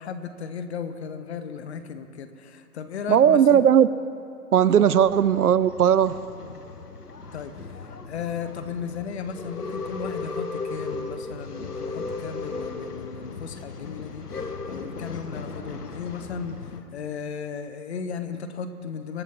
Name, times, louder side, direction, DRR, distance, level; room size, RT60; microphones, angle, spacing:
voice 1, 0.0-3.6 7.3-16.6 16.9-19.2, left 6 dB, 45° left, 10 dB, 1.2 m, -35 dB
voice 2, 3.1-3.9 4.5-6.2, right 9 dB, 75° right, 17 dB, 0.6 m, -17 dB
Male speech man speaking / Chatter / Rattle, 4.9-16.8, left 4 dB, 85° left, 1.4 m, -36 dB
25.0 x 12.0 x 3.8 m, 2.6 s
figure-of-eight pair, 135°, 45 cm